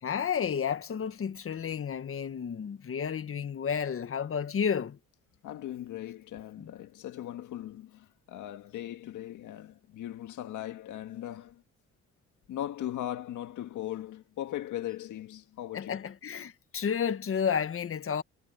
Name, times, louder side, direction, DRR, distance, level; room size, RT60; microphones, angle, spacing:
voice 1, 0.0-5.0 6.6-6.7 15.7-18.2, left 7 dB, 45° left, 1.6 m, -31 dB
voice 2, 5.4-11.6 12.5-16.1, left 12 dB, 80° left, 1.9 m, -39 dB
cardioid pair, 90°, 30 cm